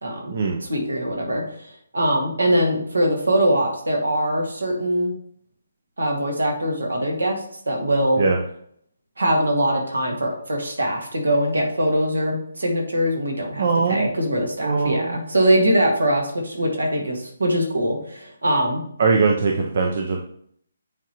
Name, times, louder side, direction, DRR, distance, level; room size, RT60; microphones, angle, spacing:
voice 1, 0.0-0.3 0.6-5.1 6.0-8.2 9.2-18.8, right 1 dB, 80° right, 1 dB, 1.8 m, -22 dB
voice 2, 13.6-14.1 14.6-15.2 19.0-20.2, right 4 dB, 50° right, 2 dB, 0.7 m, -21 dB
8.9 x 3.7 x 3.0 m, 0.64 s
figure-of-eight pair, 145°, 0 cm